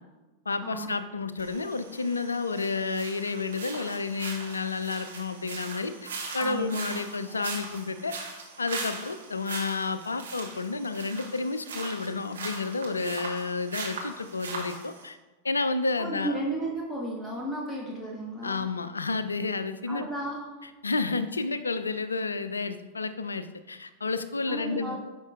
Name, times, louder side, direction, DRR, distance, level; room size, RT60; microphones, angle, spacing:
voice 1, 0.5-8.2 8.6-15.2 15.4-16.4 18.4-20.1 20.8-25.0, left 4 dB, 75° left, 12 dB, 0.4 m, -31 dB
sound 1, 1.4-15.1, right 3 dB, 65° right, 1.3 m, -40 dB
voice 2, 6.4-7.0 7.3-7.8 16.0-18.7 19.9-20.7 24.5-25.0, right 1 dB, ahead, -5 dB, 1.1 m, -34 dB
9.6 x 5.4 x 2.4 m, 1.1 s
figure-of-eight pair, 90°, 0 cm